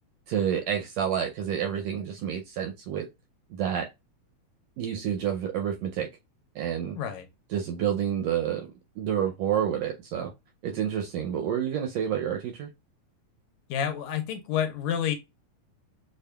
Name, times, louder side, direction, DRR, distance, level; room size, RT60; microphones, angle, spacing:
voice 1, 0.3-3.1 3.5-3.9 4.8-6.1 6.5-7.0 7.5-8.7 9.0-10.3 10.6-12.7, right 9 dB, 80° right, 1.5 m, -29 dB
voice 2, 7.0-7.3 13.7-15.2, left 9 dB, 80° left, 1.8 m, -29 dB
6.4 x 2.2 x 2.2 m
omnidirectional pair, 3.4 m